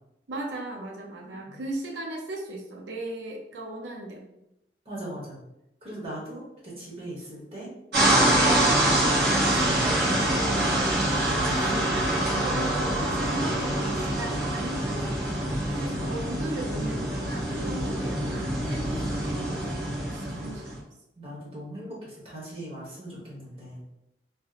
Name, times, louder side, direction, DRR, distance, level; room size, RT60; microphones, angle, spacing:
voice 1, 0.3-4.2 12.3-15.4 15.7-19.7 20.1-20.8, right 2 dB, 85° right, 0 dB, 0.5 m, -37 dB
voice 2, 1.3-1.6 4.8-5.4 5.8-7.7 8.1-11.9 15.7-16.1 20.2-20.5 21.2-23.8, equal, 30° right, -5 dB, 1.0 m, -40 dB
sound 1, 7.9-20.8, right 1 dB, 65° right, 1.0 m, -25 dB
2.8 x 2.0 x 3.8 m, 0.86 s
head